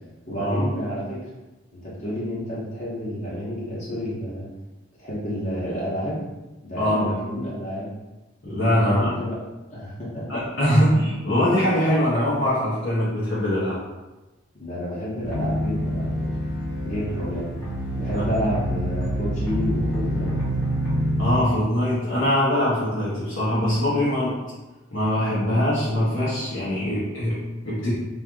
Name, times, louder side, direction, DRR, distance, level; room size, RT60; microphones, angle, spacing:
voice 1, 0.3-1.3 1.7-4.5 5.0-6.2 6.6-7.9 8.7-9.4 9.7-10.3 14.5-16.3 16.8-17.5 17.9-20.4, equal, 35° left, -9 dB, 1.1 m, -30 dB
voice 2, 6.7-7.1 8.4-9.1 10.3-13.8 18.1-18.2 21.2-24.4 24.9-27.9, equal, 65° left, -11 dB, 1.3 m, -22 dB
sound 1, 15.2-21.4, equal, 10° left, 1.1 m, -26 dB
3.4 x 2.9 x 3.6 m, 1.1 s
head